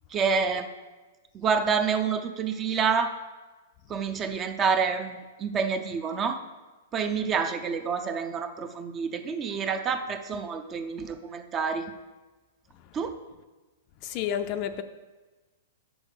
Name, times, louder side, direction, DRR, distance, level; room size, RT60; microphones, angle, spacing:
voice 1, 0.1-0.7 1.3-3.1 3.9-6.4 6.9-11.9 12.9-13.1, right 5 dB, 20° right, 0.5 m, -28 dB
voice 2, 14.0-14.8, left 9 dB, 35° left, 0.4 m, -32 dB
7.1 x 6.2 x 4.9 m
hypercardioid pair, 155°, 0 cm